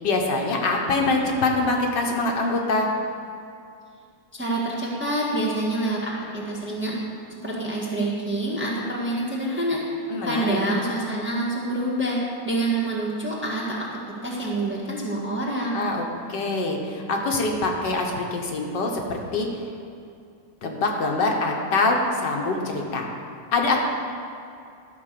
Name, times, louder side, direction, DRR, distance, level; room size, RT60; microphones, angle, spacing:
voice 1, 0.0-2.9 10.1-10.6 15.7-19.5 20.6-23.1 23.5-23.8, left 3 dB, 70° left, 1 dB, 1.7 m, -24 dB
voice 2, 4.3-7.0 7.4-9.8 10.2-12.2 12.4-13.8 14.2-15.8, right 2 dB, 5° right, -5 dB, 1.3 m, -26 dB
12.5 x 5.0 x 6.7 m, 2.4 s
omnidirectional pair, 2.0 m